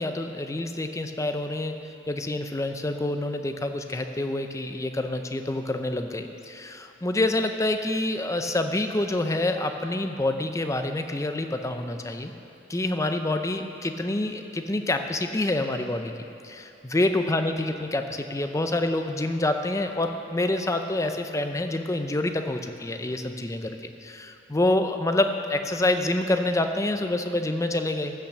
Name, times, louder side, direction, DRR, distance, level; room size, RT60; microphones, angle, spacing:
voice 1, 0.0-1.8 2.1-12.3 12.7-16.1 16.4-28.1, left 2 dB, 15° left, 6 dB, 0.6 m, -27 dB
15.0 x 5.9 x 6.7 m, 2.8 s
head